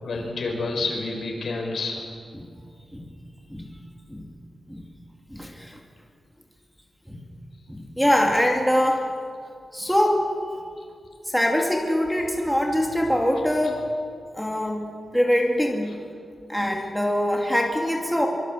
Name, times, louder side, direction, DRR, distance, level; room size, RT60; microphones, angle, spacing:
voice 1, 0.0-2.0, left 3 dB, 70° left, 2 dB, 5.5 m, -29 dB
voice 2, 5.3-5.8 7.1-7.2 7.7-9.1 9.7-10.3 11.3-13.8 14.3-16.0 16.5-18.3, equal, ahead, 1 dB, 2.4 m, -23 dB
24.5 x 23.0 x 7.8 m, 2.3 s
wide cardioid pair, 150°, 0 cm